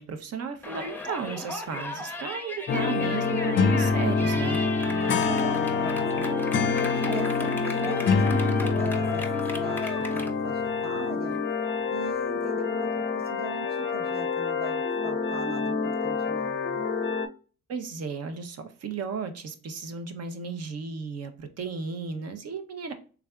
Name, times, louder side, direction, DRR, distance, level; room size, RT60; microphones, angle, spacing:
voice 1, 0.0-4.6 17.7-22.9, right 5 dB, 55° right, 8 dB, 0.8 m, -34 dB
Yell, 0.6-10.3, left 2 dB, 5° left, 0.7 m, -36 dB
sound 1, 2.7-17.3, left 5 dB, 40° left, 0.5 m, -26 dB
voice 2, 4.8-6.4 6.8-9.3 9.5-11.4 11.9-16.9, right 3 dB, 30° right, 3 dB, 1.0 m, -40 dB
3.5 x 3.3 x 2.3 m, 0.38 s
cardioid pair, 90°, 30 cm